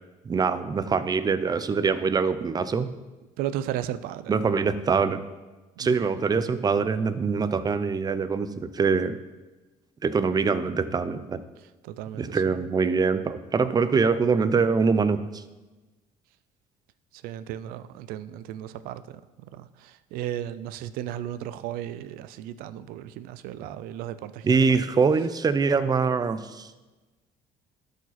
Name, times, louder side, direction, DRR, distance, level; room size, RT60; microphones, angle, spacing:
voice 1, 0.3-2.9 4.3-5.2 5.8-9.2 10.0-11.4 12.2-15.4 24.4-26.7, right 5 dB, 25° right, 0.5 m, -24 dB
voice 2, 3.4-4.3 5.8-6.1 11.8-12.4 17.1-24.8, right 11 dB, 85° right, 0.5 m, -35 dB
12.0 x 5.0 x 4.2 m
cardioid pair, 105°, 15 cm